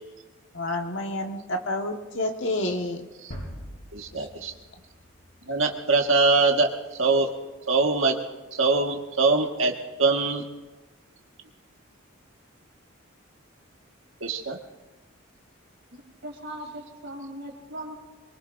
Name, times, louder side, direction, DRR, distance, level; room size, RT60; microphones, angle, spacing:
voice 1, 0.5-3.1 4.1-4.3, left 1 dB, 65° left, 3 dB, 1.5 m, -29 dB
sound 1, 3.3-6.1, equal, 80° left, 6.0 m, -42 dB
voice 2, 3.9-4.5 5.5-6.7 7.0-7.3 7.7-8.2 8.5-9.7 10.0-10.4 14.2-14.6, right 3 dB, 80° right, 2 dB, 1.6 m, -22 dB
voice 3, 15.9-18.0, right 1 dB, 60° right, 1 dB, 3.5 m, -39 dB
23.5 x 22.5 x 2.6 m, 1.2 s
head